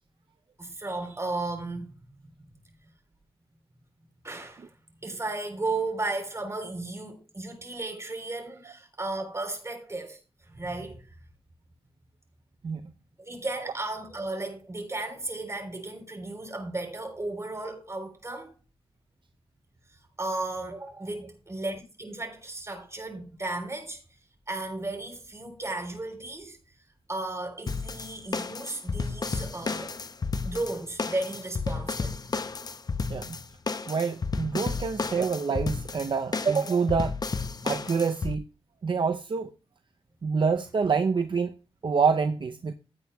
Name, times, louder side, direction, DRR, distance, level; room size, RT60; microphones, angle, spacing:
voice 1, 0.6-1.9 2.4-2.6 4.2-4.7 5.0-11.0 13.2-18.5 20.2-24.0 24.5-26.6 27.1-30.0 30.4-32.2 35.0-35.1, right 2 dB, 30° right, 3.7 m, -34 dB
sound 1, 27.7-38.4, left 4 dB, 45° left, 0.7 m, -32 dB
voice 2, 33.9-37.2 37.6-38.4 38.8-39.5 40.2-41.5 41.8-42.7, right 5 dB, 60° right, 0.6 m, -26 dB
15.5 x 8.8 x 2.3 m
wide cardioid pair, 80°, 10 cm